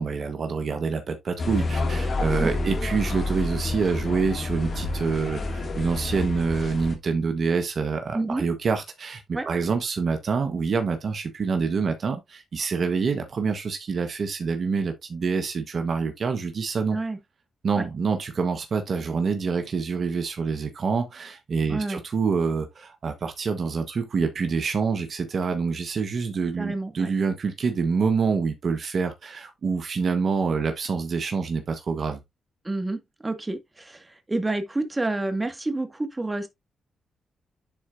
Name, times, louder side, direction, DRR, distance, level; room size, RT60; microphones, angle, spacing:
voice 1, 0.0-17.0 17.6-32.2, right 5 dB, 60° right, 1.3 m, -26 dB
sound 1, 1.4-7.0, left 2 dB, 55° left, 2.3 m, -28 dB
voice 2, 8.1-8.4 9.3-9.5 16.9-17.2 17.8-17.9 21.7-22.0 26.6-27.1 32.6-36.5, right 2 dB, 20° right, 2.0 m, -29 dB
10.5 x 4.4 x 2.7 m
supercardioid pair, 60°, 0 cm